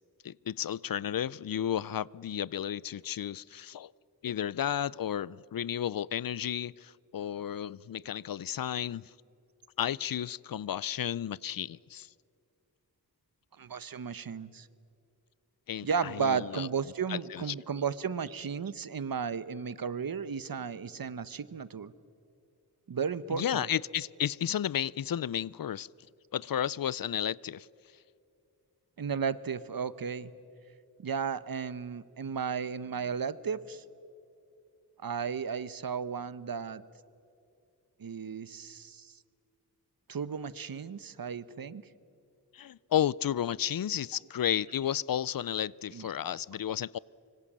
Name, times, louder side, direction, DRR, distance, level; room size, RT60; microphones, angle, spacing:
voice 1, 0.2-3.9 4.2-9.1 9.8-12.1 15.7-16.7 17.1-17.6 23.3-25.9 26.3-27.7 42.5-47.0, left 10 dB, 60° left, 0.5 m, -33 dB
voice 2, 13.6-14.7 15.8-21.9 22.9-23.6 29.0-30.3 31.0-33.8 35.0-36.8 38.0-39.2 40.1-41.8 45.9-46.4, right 6 dB, 60° right, 0.9 m, -34 dB
25.0 x 25.0 x 7.4 m
wide cardioid pair, 85°, 39 cm